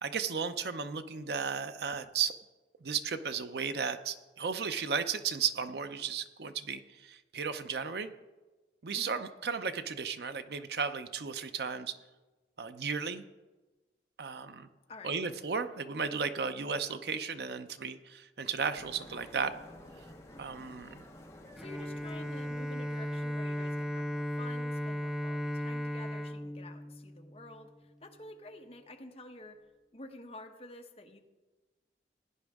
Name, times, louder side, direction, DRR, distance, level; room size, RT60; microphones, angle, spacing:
voice 1, 0.0-2.3 2.8-8.1 8.8-12.0 12.6-13.2 14.2-14.7 15.0-19.5 20.4-21.0, right 6 dB, 70° right, 10 dB, 0.6 m, -34 dB
sound 1, 18.7-23.9, left 1 dB, 15° left, 1.0 m, -53 dB
voice 2, 21.6-27.7 28.0-29.6 29.9-31.2, left 2 dB, 35° left, 4 dB, 0.9 m, -49 dB
Bowed string instrument, 21.6-27.6, equal, 5° right, 0.3 m, -36 dB
16.5 x 9.8 x 3.6 m, 1.2 s
head